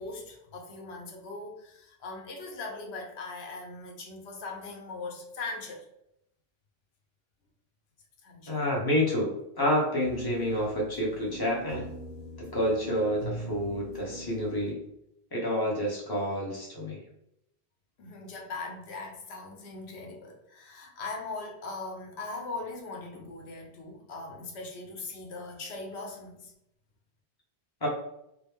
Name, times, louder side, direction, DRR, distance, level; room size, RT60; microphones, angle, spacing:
voice 1, 0.0-5.8 8.2-8.6 18.0-26.5, left 3 dB, 85° left, 1 dB, 1.0 m, -40 dB
voice 2, 8.5-11.9 12.4-14.8 15.3-17.0 27.8-27.9, equal, 20° left, -3 dB, 1.1 m, -29 dB
sound 1, 10.0-14.7, right 1 dB, 80° right, 1.2 m, -41 dB
4.8 x 2.2 x 3.5 m, 0.79 s
omnidirectional pair, 1.1 m